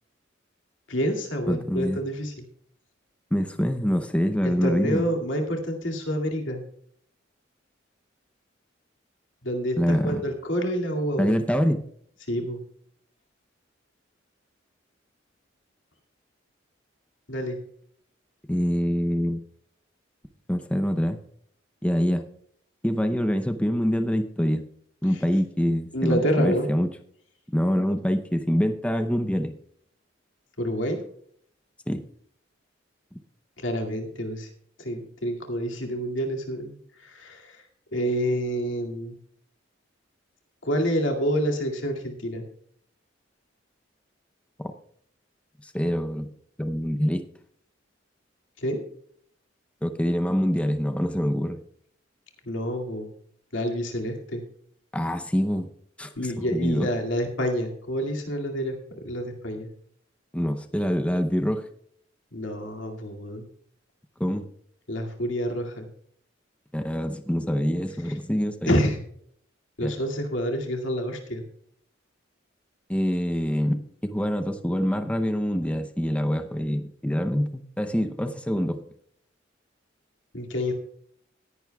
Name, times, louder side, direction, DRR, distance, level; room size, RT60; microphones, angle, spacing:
voice 1, 0.9-2.3 4.4-6.6 9.4-11.4 12.3-12.6 17.3-17.6 25.9-26.7 30.6-31.0 33.6-34.5 34.8-37.6 37.9-39.2 40.6-42.4 48.6-48.8 52.4-53.1 53.5-54.4 56.2-59.7 62.3-63.4 64.9-65.9 68.7-69.0 69.8-71.4 80.3-80.7, equal, 85° left, 2 dB, 2.2 m, -28 dB
voice 2, 1.5-2.0 3.3-5.0 9.8-10.2 11.2-11.8 18.5-19.4 20.5-21.2 21.8-22.2 22.8-24.6 25.0-26.9 27.5-29.5 31.9-32.0 33.1-33.2 44.6-44.7 45.6-46.3 46.6-47.2 49.8-51.6 54.9-55.7 56.0-56.9 60.3-61.6 64.2-64.5 66.7-68.8 69.8-69.9 72.9-78.8, equal, 5° left, 7 dB, 0.6 m, -25 dB
17.5 x 10.5 x 2.3 m, 0.65 s
head